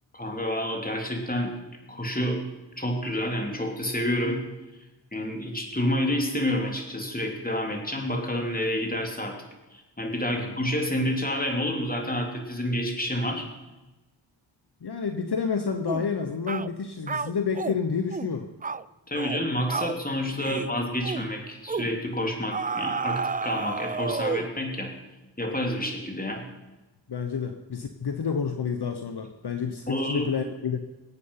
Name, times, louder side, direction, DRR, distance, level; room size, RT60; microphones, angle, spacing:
voice 1, 0.1-1.5 1.9-2.4 2.8-4.4 5.1-9.4 9.7-13.5 19.1-24.9 25.4-26.4 29.9-30.3, left 1 dB, 20° left, 2 dB, 3.5 m, -29 dB
voice 2, 14.8-18.5 20.3-20.6 27.1-30.8, left 6 dB, 60° left, 7 dB, 1.1 m, -29 dB
sound 1, 15.9-16.1 16.5-16.7 17.1-17.8 18.1-18.3 18.6-18.8 19.1-19.4 19.7-20.0 20.4-20.7 21.0-21.3 21.7-21.9 22.5-24.6, right 5 dB, 20° right, 0.4 m, -31 dB
21.0 x 8.4 x 5.7 m, 1.1 s
cardioid pair, 45°, 46 cm